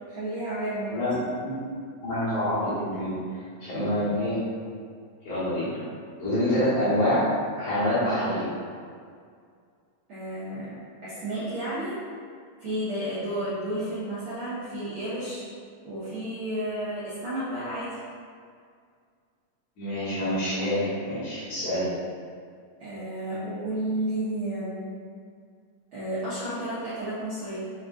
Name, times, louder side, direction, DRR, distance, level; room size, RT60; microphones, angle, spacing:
voice 1, 0.1-1.0 10.1-12.0 12.6-15.5 15.8-18.0 22.8-25.0 25.9-27.6, right 1 dB, 90° right, -11 dB, 1.1 m, -32 dB
voice 2, 1.4-1.8 2.0-3.2 3.6-4.4 5.2-5.8 6.2-7.2 7.6-8.5 19.8-21.9, left 1 dB, 55° left, -11 dB, 2.6 m, -26 dB
5.5 x 3.5 x 2.5 m, 2.1 s
omnidirectional pair, 3.8 m